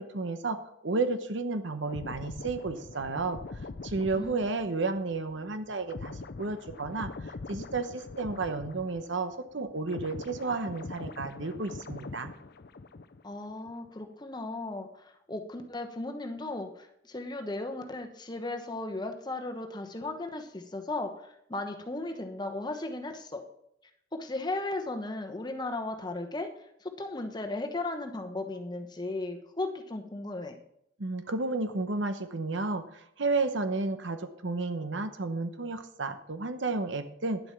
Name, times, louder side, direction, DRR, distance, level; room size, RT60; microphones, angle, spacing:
voice 1, 0.0-3.4 3.8-12.3 31.0-37.4, right 3 dB, 70° right, 9 dB, 0.9 m, -32 dB
sound 1, 1.9-9.4 9.6-13.3 13.6-13.9, left 3 dB, 55° left, 0.6 m, -43 dB
voice 2, 4.1-4.4 13.2-23.4 24.1-26.5 26.8-30.6, left 2 dB, 20° left, 5 dB, 1.1 m, -36 dB
10.5 x 7.9 x 5.8 m, 0.75 s
head